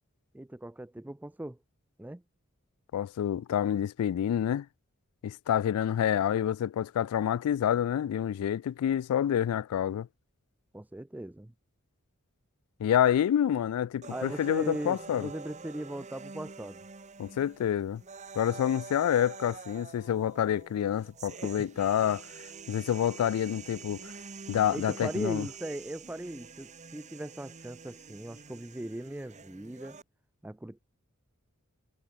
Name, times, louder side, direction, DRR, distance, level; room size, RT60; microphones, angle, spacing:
voice 1, 0.3-1.6 2.0-2.2 10.7-11.5 14.1-16.8 21.6-21.7 24.7-30.0 30.4-30.8, right 1 dB, 10° right, 0.4 m, -39 dB
voice 2, 2.9-4.7 5.2-10.1 12.8-15.3 17.2-18.0 18.4-22.3 22.7-24.1 24.5-25.5, left 9 dB, 85° left, 0.3 m, -28 dB
sound 1, 14.0-30.0, right 5 dB, 35° right, 1.2 m, -47 dB
head